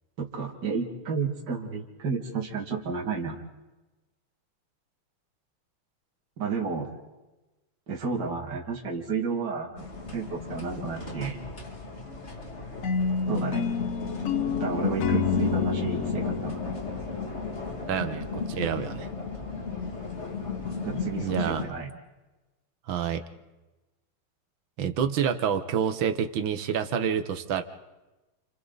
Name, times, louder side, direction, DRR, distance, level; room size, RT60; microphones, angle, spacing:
voice 1, 0.2-3.4 6.4-6.9 7.9-9.8 10.1-11.4 13.3-13.7 14.6-16.6 20.8-21.9, right 5 dB, 55° right, -2 dB, 2.9 m, -31 dB
sound 1, 9.8-21.6, left 5 dB, 30° left, 2.6 m, -34 dB
sound 2, 12.8-18.0, left 5 dB, 55° left, 0.9 m, -30 dB
voice 2, 17.9-19.1 21.2-21.6 22.9-23.2 24.8-27.6, right 8 dB, 70° right, 9 dB, 1.9 m, -28 dB
29.5 x 29.0 x 4.0 m, 1.1 s
omnidirectional pair, 2.3 m